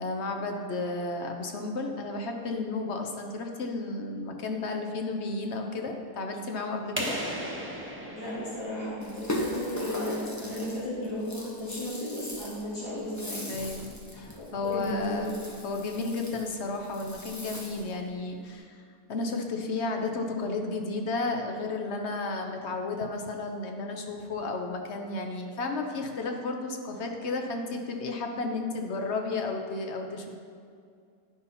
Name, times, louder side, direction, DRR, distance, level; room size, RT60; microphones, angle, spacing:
voice 1, 0.0-7.2 13.5-15.4 15.6-18.8 19.1-30.4, left 3 dB, 50° left, 3 dB, 0.9 m, -33 dB
sound 1, 7.0-9.6, right 1 dB, 10° right, 0.8 m, -36 dB
voice 2, 8.1-13.4 14.3-15.2, left 1 dB, 90° left, -11 dB, 2.9 m, -35 dB
Rattle (instrument), 9.0-18.0, left 1 dB, 20° left, 0.5 m, -39 dB
10.5 x 5.5 x 4.2 m, 2.2 s
omnidirectional pair, 1.7 m